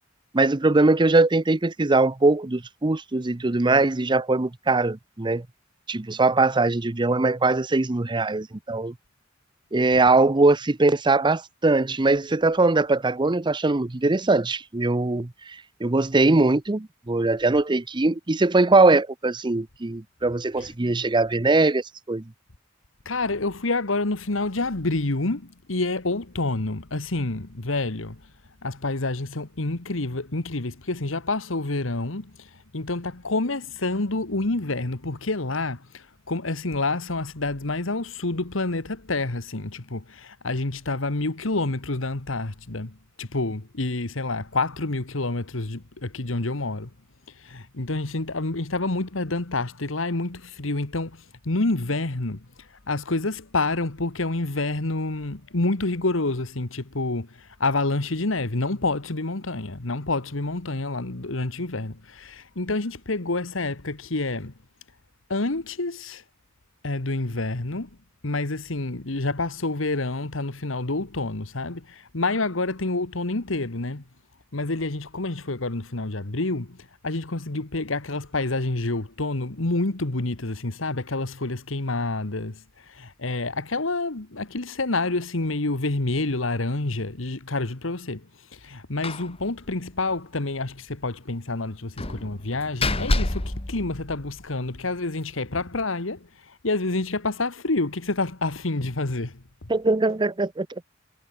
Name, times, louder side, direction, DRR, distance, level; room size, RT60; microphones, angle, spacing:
voice 1, 0.3-5.4 5.9-8.9 9.7-22.2 99.7-100.7, right 3 dB, 25° right, 0.7 m, -21 dB
voice 2, 23.1-28.2 28.6-32.5 32.7-46.9 47.4-52.5 52.9-64.5 65.3-66.2 66.8-67.9 68.2-74.0 74.5-76.8 77.0-82.6 82.9-88.3 88.5-96.3 96.6-99.4, left 2 dB, 80° left, 1.7 m, -28 dB
Slam, 89.0-89.3 89.6-89.7 90.1-90.2 92.0-94.6, left 2 dB, 30° left, 1.7 m, -28 dB
head